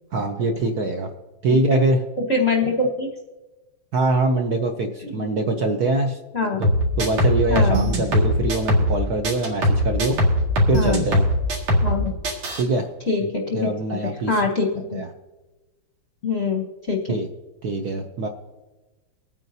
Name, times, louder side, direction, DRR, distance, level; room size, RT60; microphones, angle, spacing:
voice 1, 0.1-1.1 1.4-2.0 3.9-6.2 6.5-6.7 7.0-10.2 10.7-11.2 12.5-12.9 13.5-14.3 14.9-15.1 17.1-17.3 17.6-18.3, right 2 dB, 60° right, 3 dB, 1.1 m, -23 dB
voice 2, 1.5-1.8 2.2-3.1 5.0-5.3 6.3-6.6 7.5-7.8 10.7-11.0 11.8-12.1 13.1-13.7 14.0-15.0 16.2-17.0, left 3 dB, 45° left, 1 dB, 0.9 m, -24 dB
sound 1, 6.6-9.0 9.2-12.0 12.2-12.6, equal, 75° right, 2.9 m, -20 dB
24.5 x 9.1 x 2.7 m, 1.1 s
omnidirectional pair, 2.4 m